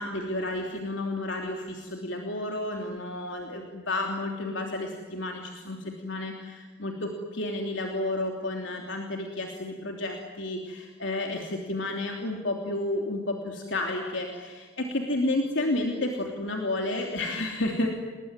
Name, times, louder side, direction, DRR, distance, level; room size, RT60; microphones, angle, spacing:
voice 1, 0.0-17.9, left 2 dB, 75° left, 2 dB, 3.2 m, -31 dB
30.0 x 20.5 x 9.7 m, 1.5 s
head